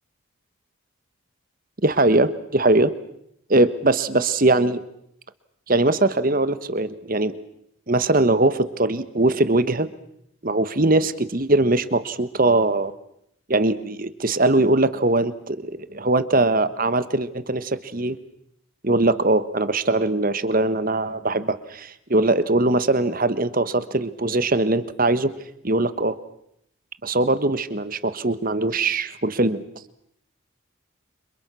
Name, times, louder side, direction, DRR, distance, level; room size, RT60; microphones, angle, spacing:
voice 1, 1.8-2.9 3.5-4.8 5.7-7.3 7.9-9.9 10.4-12.9 13.5-18.2 18.8-25.3 25.6-26.2 27.0-29.6, right 2 dB, 40° right, 13 dB, 1.4 m, -21 dB
29.5 x 26.5 x 6.3 m, 0.75 s
head